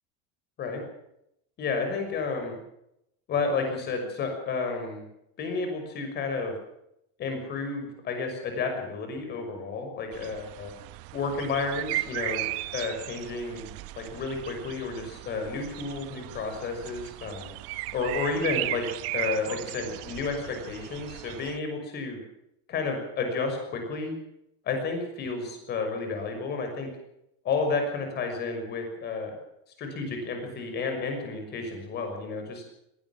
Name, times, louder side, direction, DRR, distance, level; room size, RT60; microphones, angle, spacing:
voice 1, 1.6-2.6 3.3-5.0 5.4-6.6 7.2-10.7 11.1-12.5 12.7-13.7 14.0-17.5 17.9-18.8 19.1-22.2 22.7-24.1 24.6-26.9 27.4-29.3 29.8-32.6, left 4 dB, 35° left, 5 dB, 6.1 m, -31 dB
sound 1, 10.1-21.6, right 18 dB, 50° right, 1.0 m, -36 dB
20.0 x 17.5 x 7.5 m, 0.80 s
cardioid pair, 175°, 30 cm